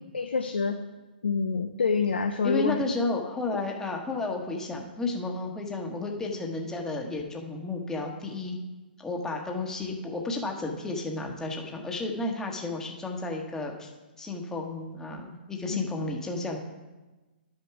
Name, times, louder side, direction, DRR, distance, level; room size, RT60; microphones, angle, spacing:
voice 1, 0.1-0.8 1.2-2.8 15.7-15.9, left 5 dB, 80° left, 6 dB, 0.7 m, -27 dB
voice 2, 2.4-8.6 9.0-13.9 14.2-16.6, left 2 dB, 10° left, 1 dB, 1.3 m, -32 dB
11.5 x 6.6 x 4.8 m, 1.2 s
hypercardioid pair, 135°, 6 cm